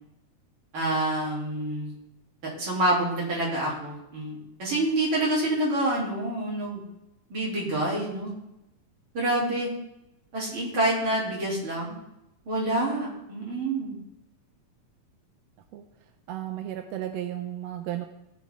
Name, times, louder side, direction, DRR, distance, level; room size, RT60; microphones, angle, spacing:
voice 1, 0.7-1.9 2.4-6.8 7.3-8.3 9.1-9.7 10.3-12.0 12.5-14.0, right 1 dB, 40° right, -6 dB, 4.2 m, -27 dB
voice 2, 16.3-18.1, right 12 dB, 75° right, 6 dB, 1.6 m, -33 dB
17.5 x 6.4 x 3.7 m, 0.88 s
omnidirectional pair, 3.6 m